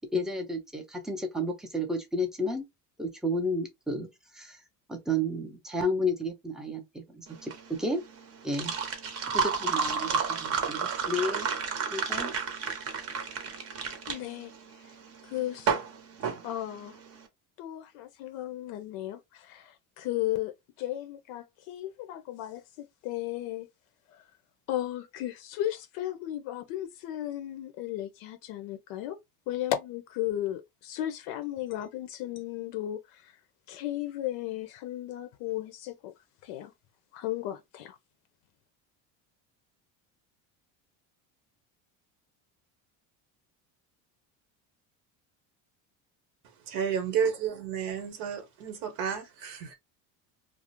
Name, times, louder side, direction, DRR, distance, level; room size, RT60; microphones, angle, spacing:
voice 1, 0.1-2.7 3.0-4.6 4.9-8.0 8.4-8.7 9.3-11.5 11.9-12.3, left 1 dB, ahead, 0.4 m, -32 dB
sound 1, 7.3-17.2, right 6 dB, 40° right, 0.7 m, -31 dB
voice 2, 14.1-14.5 15.2-15.7 16.4-17.0 17.6-23.7 24.1-24.2 24.7-29.2 29.5-33.4 33.7-36.1 36.4-36.7 37.1-38.0, left 13 dB, 75° left, 0.5 m, -35 dB
voice 3, 46.7-49.7, right 7 dB, 80° right, 1.0 m, -31 dB
2.4 x 2.0 x 2.8 m
cardioid pair, 140°, 37 cm